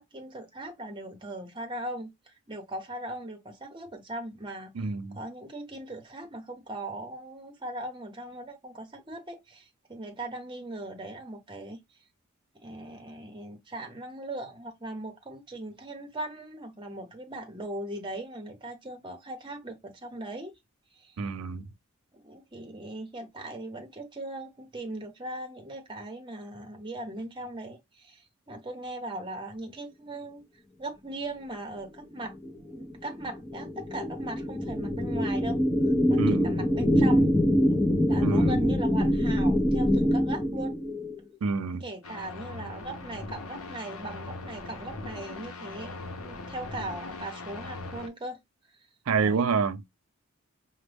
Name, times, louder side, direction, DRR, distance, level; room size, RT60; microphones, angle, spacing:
voice 1, 0.0-4.9 5.1-11.8 12.6-20.5 21.0-21.2 22.1-30.4 30.8-32.3 32.7-35.6 36.1-37.3 38.1-40.7 41.8-48.4 49.2-49.5, right 1 dB, 20° right, 0.8 m, -39 dB
voice 2, 4.7-5.2 21.2-21.7 36.2-36.5 38.2-38.6 41.4-41.8 49.1-49.8, right 5 dB, 75° right, 0.5 m, -28 dB
sound 1, 32.4-41.2, equal, 10° left, 0.5 m, -25 dB
sound 2, 42.0-48.1, left 3 dB, 75° left, 0.7 m, -40 dB
5.0 x 2.1 x 3.3 m
head